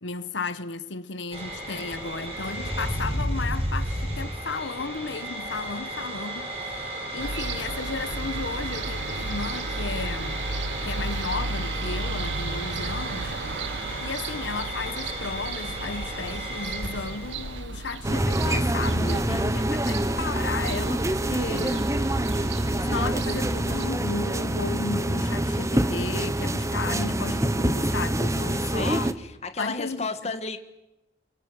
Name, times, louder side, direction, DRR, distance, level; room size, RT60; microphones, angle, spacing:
voice 1, 0.0-10.4 10.8-13.3 14.0-21.9 22.8-29.2 29.6-30.3, left 4 dB, 85° left, 1.2 m, -34 dB
sound 1, 1.3-17.6, right 1 dB, 35° right, 6.2 m, -33 dB
sound 2, 7.2-23.8, right 3 dB, 90° right, 1.2 m, -34 dB
sound 3, 18.0-29.1, right 1 dB, 15° right, 1.1 m, -26 dB
voice 2, 25.4-25.8 28.5-30.6, left 3 dB, 35° left, 1.8 m, -34 dB
28.0 x 23.5 x 7.8 m
head